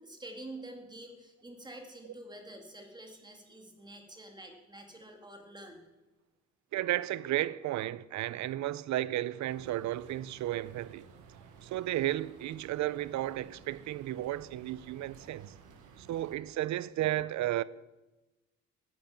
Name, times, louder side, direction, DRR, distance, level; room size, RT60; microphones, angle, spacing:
voice 1, 0.0-5.9, right 1 dB, 15° right, 2.3 m, -48 dB
voice 2, 6.7-11.1 11.6-15.5 16.0-17.6, right 14 dB, 70° right, 0.5 m, -33 dB
sound 1, 9.5-16.4, right 6 dB, 90° right, 1.4 m, -55 dB
10.5 x 9.1 x 5.8 m
cardioid pair, 90°, 30 cm